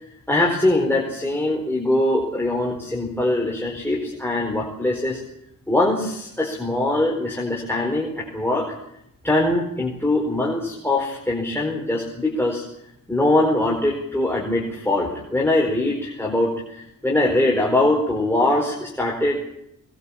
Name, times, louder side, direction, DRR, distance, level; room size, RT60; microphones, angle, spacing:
voice 1, 0.3-5.2 5.7-8.7 9.2-12.6 13.1-19.4, left 1 dB, 5° left, -2 dB, 4.5 m, -22 dB
22.0 x 20.5 x 7.2 m, 0.79 s
wide cardioid pair, 115°, 34 cm